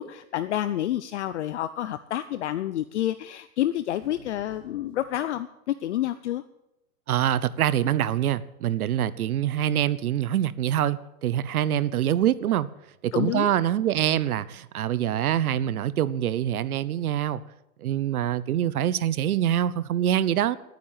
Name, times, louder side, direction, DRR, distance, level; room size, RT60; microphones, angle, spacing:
voice 1, 0.0-6.4 13.1-13.5, left 12 dB, 55° left, 13 dB, 0.7 m, -29 dB
sound 1, 4.0-5.1, left 2 dB, ahead, 7.7 m, -52 dB
voice 2, 7.1-12.7 13.0-17.4 17.8-20.6, right 11 dB, 85° right, 18 dB, 0.9 m, -25 dB
11.5 x 9.3 x 9.2 m, 0.85 s
hypercardioid pair, 165°, 43 cm